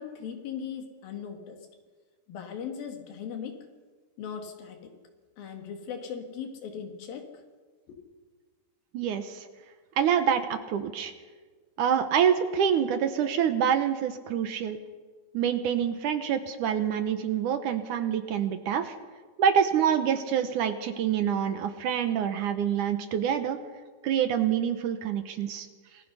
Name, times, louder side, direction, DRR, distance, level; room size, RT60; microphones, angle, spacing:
voice 1, 0.0-1.6 2.3-3.7 4.2-4.9 5.4-7.4 7.9-8.0, left 7 dB, 75° left, 4 dB, 3.9 m, -38 dB
voice 2, 8.9-9.5 10.0-11.1 11.8-14.8 15.3-19.0 19.4-23.6 24.0-25.7, right 8 dB, 70° right, 9 dB, 2.2 m, -26 dB
27.5 x 19.5 x 5.6 m, 1.4 s
omnidirectional pair, 4.2 m